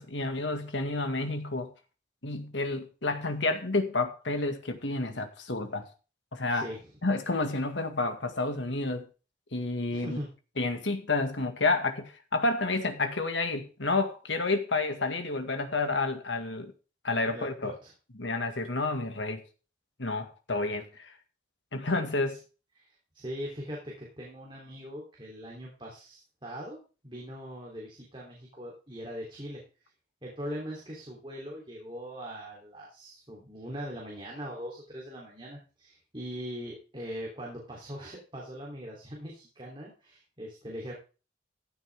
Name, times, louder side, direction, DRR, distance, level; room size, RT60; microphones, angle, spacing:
voice 1, 0.0-1.7 2.2-5.9 6.3-6.7 7.0-9.1 9.5-10.2 10.6-16.7 17.0-17.7 18.2-19.4 20.0-21.1 21.7-22.4, left 3 dB, 85° left, 2.0 m, -30 dB
voice 2, 6.5-6.9 9.9-10.3 17.3-17.9 22.3-22.4 22.7-26.8 27.0-29.9 30.2-40.9, equal, 25° right, 3.4 m, -41 dB
15.0 x 8.9 x 3.6 m
head